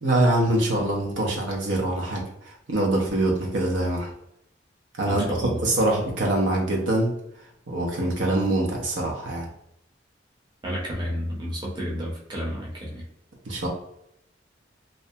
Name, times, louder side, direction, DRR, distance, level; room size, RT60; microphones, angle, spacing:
voice 1, 0.0-4.1 5.0-5.4 5.6-7.1 7.7-9.5 13.5-13.7, right 1 dB, 85° right, -1 dB, 0.7 m, -24 dB
voice 2, 5.0-5.7 10.6-13.0, equal, 25° right, -4 dB, 0.6 m, -31 dB
2.5 x 2.1 x 2.6 m, 0.75 s
head